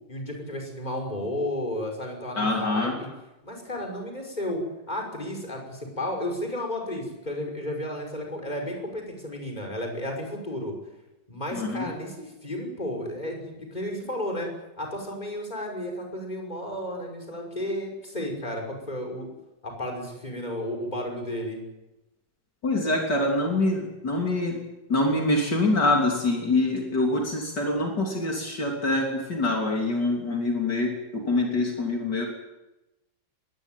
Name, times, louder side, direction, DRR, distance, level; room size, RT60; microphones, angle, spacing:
voice 1, 0.1-3.1 3.4-4.6 4.9-10.8 11.3-14.5 14.8-19.3 19.6-21.6, left 1 dB, 20° left, 1 dB, 5.8 m, -33 dB
voice 2, 2.4-2.9 11.5-11.9 22.6-24.6 24.9-32.3, left 2 dB, 65° left, 0 dB, 3.9 m, -25 dB
21.5 x 18.0 x 9.2 m, 0.99 s
omnidirectional pair, 2.0 m